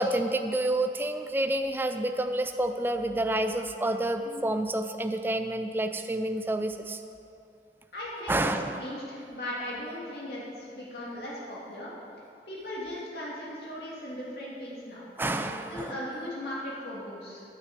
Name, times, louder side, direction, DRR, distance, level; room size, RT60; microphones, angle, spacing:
voice 1, 0.0-7.0 8.3-8.8 15.2-16.0, right 1 dB, 10° right, 7 dB, 0.3 m, -29 dB
voice 2, 7.9-11.9 12.5-17.4, left 1 dB, 60° left, -6 dB, 2.7 m, -38 dB
9.4 x 6.1 x 7.6 m, 2.6 s
head